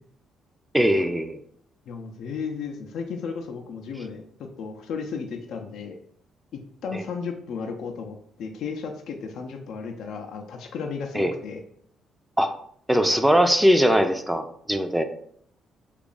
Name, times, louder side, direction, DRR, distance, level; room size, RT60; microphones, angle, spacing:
voice 1, 0.7-1.4 11.2-11.3 12.4-12.5 12.9-15.0, equal, 5° right, 8 dB, 0.4 m, -20 dB
voice 2, 1.9-6.0 6.5-11.6, left 5 dB, 75° left, 3 dB, 0.4 m, -34 dB
2.9 x 2.4 x 3.9 m, 0.65 s
cardioid pair, 90°, 0 cm